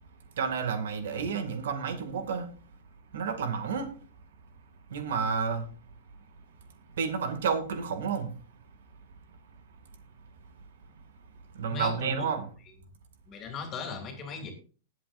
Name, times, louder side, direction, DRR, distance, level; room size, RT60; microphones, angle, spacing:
voice 1, 0.3-2.5 3.1-3.9 4.9-5.7 7.0-8.3 11.5-12.4, right 6 dB, 75° right, 2.4 m, -30 dB
voice 2, 11.7-12.3 13.3-14.5, left 4 dB, 20° left, 2.8 m, -38 dB
20.5 x 7.7 x 2.7 m
supercardioid pair, 165°, 0 cm